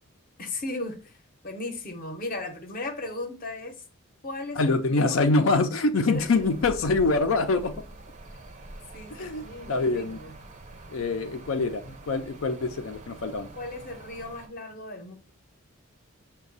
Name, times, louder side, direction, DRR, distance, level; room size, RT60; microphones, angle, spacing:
voice 1, 0.4-1.1 1.4-3.8 4.2-5.2 5.9-6.5 8.9-10.3 13.6-15.1, left 2 dB, 40° left, 0.7 m, -36 dB
voice 2, 4.6-7.7 9.1-10.2 10.9-13.5, left 3 dB, 70° left, 0.5 m, -25 dB
sound 1, 6.1-14.5, right 1 dB, 35° right, 0.6 m, -45 dB
5.8 x 2.2 x 3.9 m
head